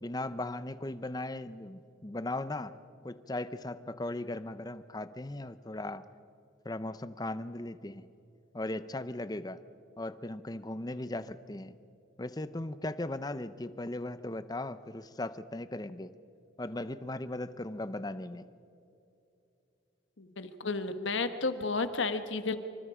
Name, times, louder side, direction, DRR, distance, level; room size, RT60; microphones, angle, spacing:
voice 1, 0.0-2.7 3.0-6.0 6.6-8.1 8.5-9.6 10.0-11.7 12.2-16.1 16.6-18.5, left 2 dB, 20° left, 14 dB, 0.6 m, -38 dB
voice 2, 20.2-22.6, left 3 dB, 70° left, 10 dB, 1.3 m, -32 dB
26.5 x 25.0 x 5.0 m, 2.7 s
head